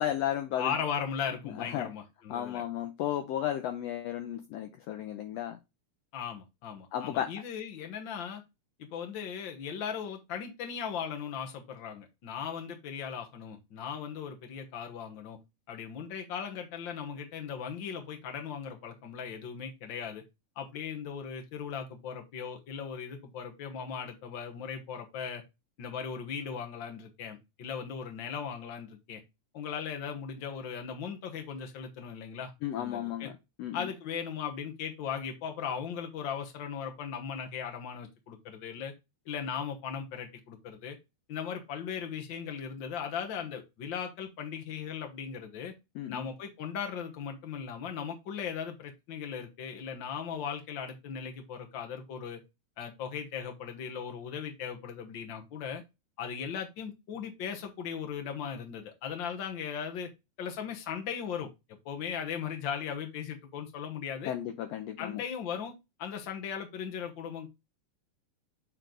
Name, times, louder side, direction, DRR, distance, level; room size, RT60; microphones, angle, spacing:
voice 1, 0.0-0.7 1.6-1.9 2.3-5.6 6.9-7.3 32.6-33.9 45.9-46.3 64.2-65.2, left 11 dB, 75° left, 1.6 m, -34 dB
voice 2, 0.6-2.6 6.1-8.4 8.8-15.4 15.7-20.2 20.6-25.4 25.8-29.2 29.5-32.5 32.8-33.3 33.7-38.9 39.2-41.0 41.3-45.7 46.1-52.4 52.8-55.8 56.2-60.1 60.4-61.5 61.8-64.3 65.0-67.5, left 7 dB, 50° left, 1.5 m, -38 dB
9.2 x 3.3 x 3.9 m
omnidirectional pair, 3.5 m